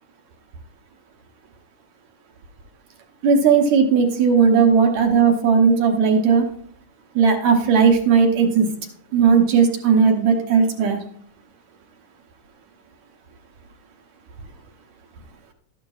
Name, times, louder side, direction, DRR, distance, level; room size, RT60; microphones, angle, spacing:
voice 1, 3.2-6.5 7.2-8.7 9.1-11.0, right 6 dB, 70° right, 4 dB, 1.7 m, -16 dB
13.0 x 11.5 x 2.4 m, 0.62 s
omnidirectional pair, 4.3 m